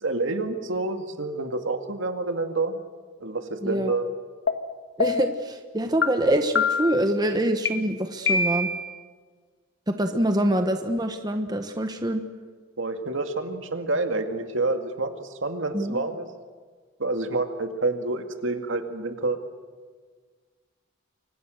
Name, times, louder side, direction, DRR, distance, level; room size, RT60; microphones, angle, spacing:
voice 1, 0.0-2.8 3.2-4.1 12.8-16.2 17.0-19.4, right 3 dB, 70° right, 6 dB, 2.3 m, -28 dB
voice 2, 3.6-4.0 5.0-8.7 9.9-12.2 15.7-16.0, right 1 dB, 20° right, 6 dB, 1.3 m, -25 dB
sound 1, 4.5-4.6 5.0-5.4 6.0-6.1 6.6-7.0 7.7-7.8 8.3-8.9, left 4 dB, 65° left, 1.6 m, -24 dB
29.5 x 24.5 x 6.6 m, 1.5 s
head